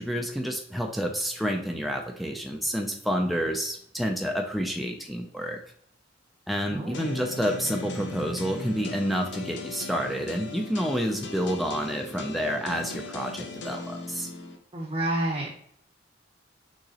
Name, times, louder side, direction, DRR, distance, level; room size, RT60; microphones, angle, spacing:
voice 1, 0.0-5.6 6.5-14.3, equal, ahead, 2 dB, 0.4 m, -29 dB
voice 2, 6.7-7.1 14.7-15.5, right 1 dB, 30° right, -1 dB, 0.7 m, -29 dB
sound 1, 6.9-14.6, left 3 dB, 65° left, 0.7 m, -38 dB
6.4 x 2.9 x 2.8 m, 0.66 s
head